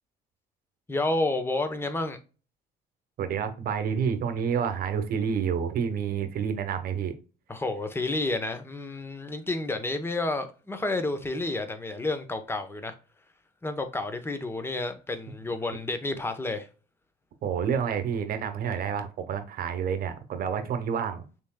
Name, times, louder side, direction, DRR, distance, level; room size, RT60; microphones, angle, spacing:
voice 1, 0.9-2.2 7.5-12.9 13.6-16.7, left 2 dB, 15° left, 0.8 m, -30 dB
voice 2, 3.2-7.1 17.4-21.2, right 7 dB, 60° right, 1.0 m, -29 dB
6.0 x 3.5 x 2.2 m
cardioid pair, 110°, 17 cm